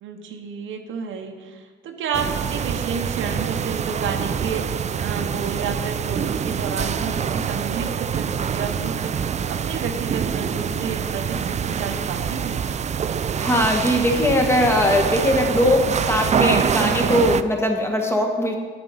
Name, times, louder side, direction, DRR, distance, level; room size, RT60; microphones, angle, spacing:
voice 1, 0.0-12.7, right 5 dB, 80° right, 4 dB, 0.9 m, -31 dB
sound 1, 2.1-17.4, right 7 dB, 35° right, 0.4 m, -25 dB
voice 2, 13.3-18.6, left 1 dB, 10° left, 2 dB, 1.6 m, -20 dB
8.9 x 7.1 x 5.6 m, 1.5 s
cardioid pair, 90°, 20 cm